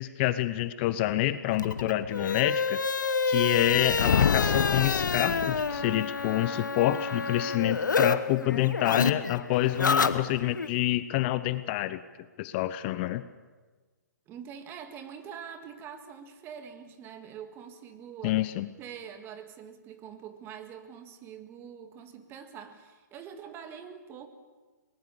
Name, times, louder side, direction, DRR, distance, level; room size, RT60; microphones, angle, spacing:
voice 1, 0.0-2.8 3.3-12.0 12.4-13.2 18.2-18.7, left 15 dB, 35° left, 14 dB, 0.7 m, -27 dB
sound 1, 1.5-8.1 8.4-10.7, left 5 dB, 90° left, 1.2 m, -28 dB
Thunder, 3.7-6.0, left 8 dB, 65° left, 0.9 m, -27 dB
voice 2, 14.3-18.4 18.8-24.3, right 8 dB, 25° right, 7 dB, 1.9 m, -44 dB
23.5 x 19.5 x 7.1 m, 1.3 s
hypercardioid pair, 135°, 10 cm